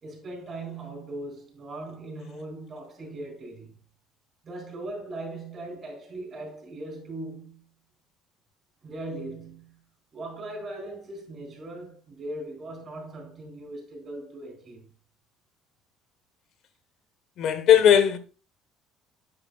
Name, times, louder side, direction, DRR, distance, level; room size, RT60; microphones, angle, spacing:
voice 1, 0.0-3.8 4.4-7.6 8.8-9.8 10.1-14.8, right 2 dB, 30° right, 4.1 m, -39 dB
voice 2, 17.4-18.2, left 9 dB, 55° left, 1.1 m, -18 dB
9.0 x 8.0 x 2.4 m
cardioid pair, 140°, 0 cm